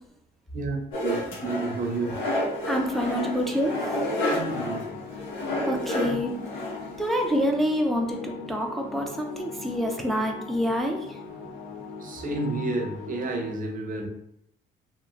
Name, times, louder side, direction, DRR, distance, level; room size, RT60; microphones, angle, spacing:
voice 1, 0.5-2.3 4.3-4.9 6.0-6.2 12.0-14.1, right 3 dB, 45° right, 3 dB, 0.6 m, -31 dB
sound 1, 0.9-7.4, left 1 dB, 90° left, 1.2 m, -30 dB
sound 2, 1.6-13.5, left 4 dB, 70° left, 0.6 m, -40 dB
voice 2, 2.7-3.7 5.7-6.3 7.0-11.0, equal, ahead, 1 dB, 0.4 m, -27 dB
2.9 x 2.4 x 2.4 m, 0.78 s
cardioid pair, 90°, 20 cm